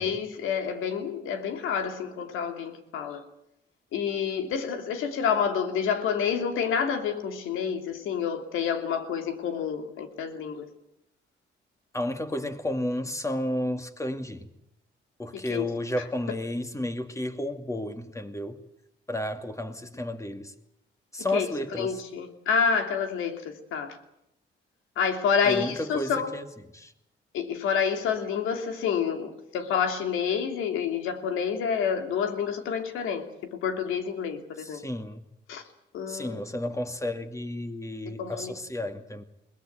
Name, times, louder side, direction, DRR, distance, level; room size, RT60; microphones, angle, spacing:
voice 1, 0.0-3.2 3.9-10.6 15.3-15.6 21.3-21.5 21.8-24.0 25.0-26.3 27.3-33.2 33.5-34.8 35.5-35.6 35.9-36.4 38.2-38.5, left 7 dB, 85° left, 2.7 m, -28 dB
voice 2, 11.9-14.5 15.2-18.6 19.1-20.5 21.1-22.0 25.4-26.5 26.7-26.9 34.6-35.2 36.1-39.2, left 1 dB, 15° left, 2.4 m, -32 dB
21.5 x 19.0 x 9.3 m
cardioid pair, 90°, 20 cm